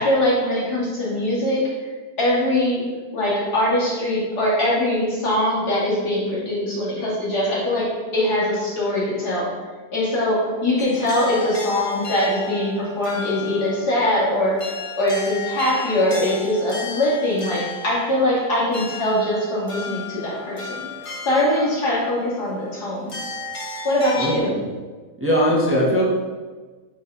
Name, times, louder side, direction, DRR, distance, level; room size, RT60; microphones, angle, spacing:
voice 1, 0.0-1.9 2.2-2.8 3.1-9.5 9.9-14.6 15.0-20.8 21.2-23.3 23.8-24.5, left 1 dB, 80° left, -7 dB, 3.2 m, -22 dB
sound 1, 10.8-24.4, left 3 dB, 40° left, 0.5 m, -35 dB
voice 2, 24.2-24.6 25.2-26.0, equal, 10° right, -5 dB, 1.4 m, -20 dB
6.6 x 5.0 x 5.8 m, 1.4 s
omnidirectional pair, 1.7 m